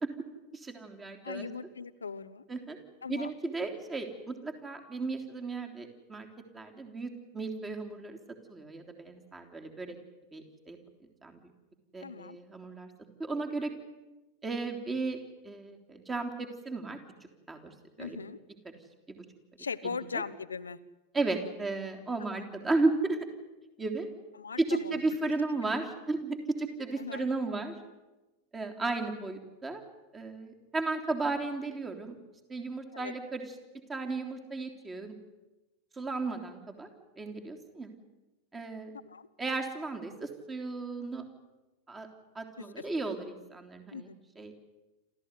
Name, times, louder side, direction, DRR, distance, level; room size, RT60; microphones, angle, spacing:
voice 1, 0.5-1.5 2.5-2.8 3.1-6.3 6.5-8.2 8.5-10.0 10.3-10.8 11.2-11.4 11.9-12.9 13.2-13.7 14.4-17.0 17.5-18.2 18.7-18.8 19.1-19.3 19.9-20.2 21.1-23.2 23.8-24.1 24.6-27.7 28.5-29.8 30.1-32.2 32.5-33.5 33.9-35.2 35.9-36.9 37.2-37.9 38.5-38.9 39.4-41.3 41.9-42.1 42.4-44.1 44.4-44.5, right 3 dB, 15° right, 4 dB, 3.5 m, -34 dB
voice 2, 1.2-2.4 3.0-3.3 12.0-12.4 18.0-18.4 19.6-20.8 22.2-22.4 24.4-25.0 27.0-27.3 32.9-33.1 39.1-39.3 42.6-42.9 43.9-44.2, left 5 dB, 75° left, 12 dB, 0.9 m, -39 dB
27.5 x 15.0 x 9.6 m, 1.1 s
figure-of-eight pair, 90°, 0 cm